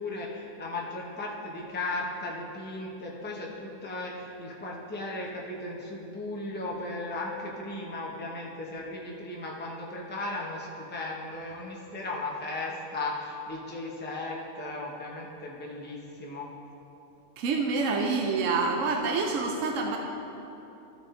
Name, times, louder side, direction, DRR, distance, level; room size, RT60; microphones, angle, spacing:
voice 1, 0.0-16.5, left 2 dB, 10° left, -3 dB, 0.8 m, -36 dB
voice 2, 17.4-20.0, right 4 dB, 75° right, 1 dB, 1.0 m, -27 dB
14.0 x 5.2 x 3.8 m, 2.9 s
omnidirectional pair, 1.3 m